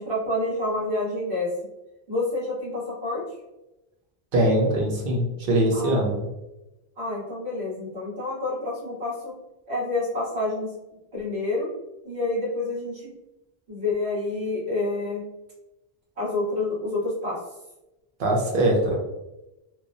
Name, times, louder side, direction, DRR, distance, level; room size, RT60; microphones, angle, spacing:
voice 1, 0.0-1.5 2.1-3.2 5.7-6.0 7.0-9.3 9.7-10.7 11.1-11.7 12.0-13.1 13.7-15.2 16.2-17.4, left 2 dB, 85° right, -7 dB, 1.5 m, -28 dB
voice 2, 4.3-6.2 18.2-19.0, right 1 dB, 60° right, -1 dB, 0.9 m, -22 dB
3.0 x 2.1 x 2.5 m, 0.97 s
omnidirectional pair, 1.1 m